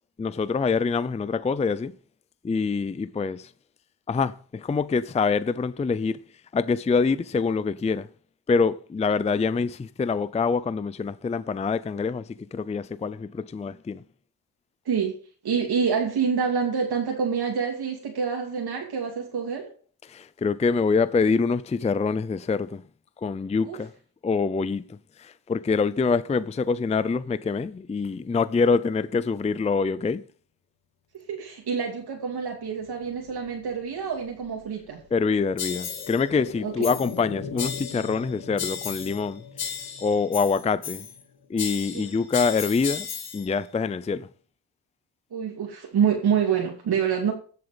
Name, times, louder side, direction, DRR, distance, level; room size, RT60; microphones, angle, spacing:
voice 1, 0.2-1.9 2.4-3.5 4.1-6.2 6.5-8.1 8.5-14.0 20.1-22.8 23.2-23.9 24.2-24.9 25.2-30.2 35.1-39.7 40.0-41.1 41.5-43.1 43.3-44.3, left 4 dB, 15° left, 0.4 m, -25 dB
voice 2, 14.8-15.2 15.4-19.7 23.7-23.8 31.3-35.0 36.6-36.9 41.9-42.0 45.3-47.3, right 6 dB, 65° right, 2.7 m, -26 dB
sound 1, 32.5-42.3 42.6-42.7, left 6 dB, 80° left, 2.5 m, -43 dB
sound 2, 35.6-36.2 36.8-37.2 37.6-38.2 38.6-39.2 39.6-41.2 41.6-43.5, left 7 dB, 60° left, 2.5 m, -34 dB
15.0 x 7.7 x 5.1 m
cardioid pair, 110°, 42 cm